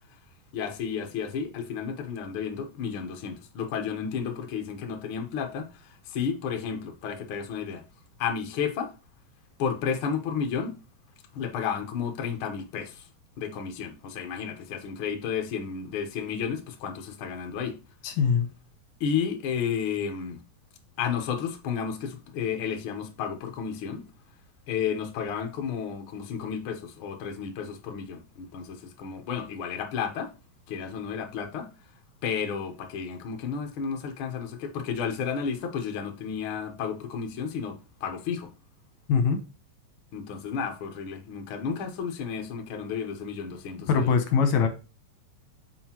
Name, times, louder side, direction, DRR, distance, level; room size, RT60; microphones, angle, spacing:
voice 1, 0.5-7.8 8.2-8.9 9.6-10.7 11.3-13.1 13.4-17.8 19.0-20.4 21.0-24.0 24.7-30.3 30.7-31.7 32.2-38.5 40.1-44.1, left 7 dB, 85° left, 1.1 m, -32 dB
voice 2, 18.0-18.5 39.1-39.4 43.9-44.7, left 6 dB, 70° left, 1.9 m, -22 dB
7.7 x 4.9 x 2.9 m
omnidirectional pair, 4.1 m